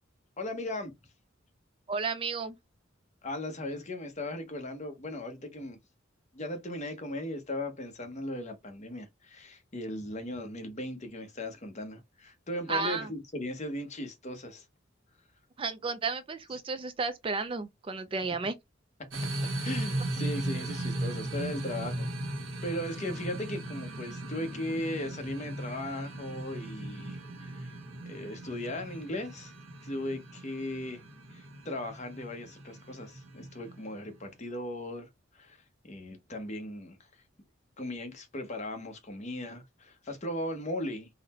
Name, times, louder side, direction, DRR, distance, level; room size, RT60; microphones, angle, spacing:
voice 1, 0.4-0.9 3.2-5.8 6.3-14.6 19.6-22.1 22.6-27.7 28.0-29.5 29.8-31.0 31.3-35.1 35.3-35.6 35.9-37.0 37.8-41.1, left 1 dB, 35° left, 0.8 m, -37 dB
voice 2, 1.9-2.6 12.7-13.1 15.6-18.6, right 4 dB, 25° right, 0.4 m, -32 dB
sound 1, 19.1-34.2, right 1 dB, 90° right, 1.0 m, -37 dB
3.9 x 2.1 x 4.1 m
head